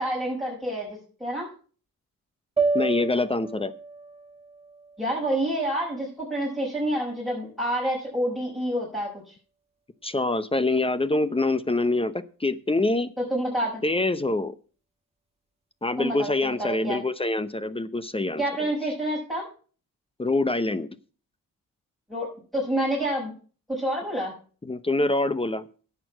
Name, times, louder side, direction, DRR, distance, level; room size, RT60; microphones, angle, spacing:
voice 1, 0.0-1.5 5.0-9.1 13.2-13.8 16.0-17.0 18.4-19.4 22.1-23.3 23.7-24.3, right 1 dB, ahead, -6 dB, 6.0 m, -28 dB
sound 1, 2.6-6.8, right 4 dB, 15° right, 1.9 m, -31 dB
voice 2, 2.7-3.7 10.0-13.1 13.8-14.5 15.8-18.4 20.2-20.9 24.6-25.6, left 2 dB, 15° left, 14 dB, 0.7 m, -25 dB
11.0 x 8.3 x 6.1 m, 0.39 s
cardioid pair, 105°, 35 cm